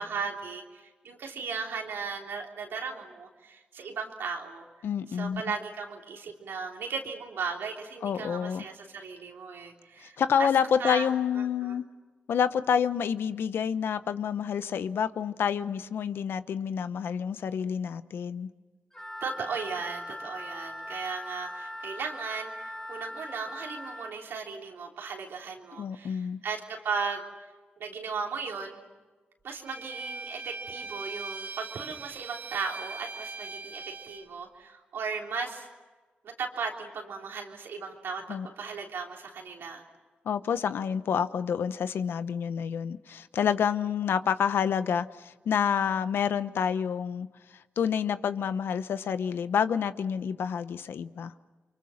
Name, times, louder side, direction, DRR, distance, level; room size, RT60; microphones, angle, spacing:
voice 1, 0.0-4.7 5.1-10.5 10.8-11.1 11.4-11.8 19.2-27.2 27.8-28.8 29.4-35.7 36.2-39.8, right 5 dB, 85° right, 1 dB, 3.4 m, -36 dB
voice 2, 4.8-5.4 8.0-8.6 10.0-11.8 12.3-18.5 25.8-26.4 38.3-38.5 40.2-47.3 47.8-51.3, left 7 dB, 80° left, 13 dB, 0.9 m, -28 dB
Wind instrument woodwind instrument, 18.9-24.1, left 1 dB, 15° left, 2.9 m, -40 dB
Bowed string instrument, 29.6-34.3, right 3 dB, 45° right, 1.5 m, -40 dB
30.0 x 24.5 x 6.5 m, 1.3 s
cardioid pair, 60°, 4 cm